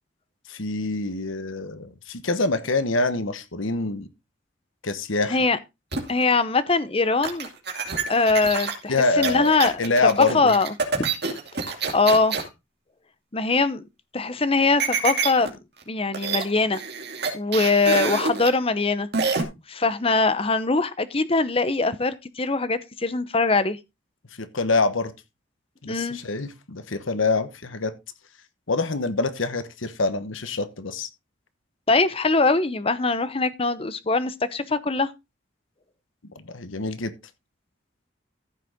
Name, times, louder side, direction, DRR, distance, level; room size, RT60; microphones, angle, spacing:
voice 1, 0.5-4.1 4.8-5.4 8.9-9.5 9.8-10.5 24.4-25.1 25.8-27.9 28.7-31.1 36.3-37.1, left 3 dB, 85° left, 1.2 m, -25 dB
sound 1, 5.9-6.2 7.2-12.5 14.8-15.5 15.8-15.9 16.1-16.5 16.7-18.5 19.1-19.4, right 5 dB, 55° right, 2.6 m, -27 dB
voice 2, 6.1-7.5 8.1-9.7 10.2-11.1 11.9-12.4 13.3-13.8 14.1-15.6 15.9-16.8 17.3-19.1 19.7-23.8 25.9-26.2 31.9-35.1, left 3 dB, 30° left, 0.8 m, -22 dB
14.5 x 6.7 x 3.6 m
head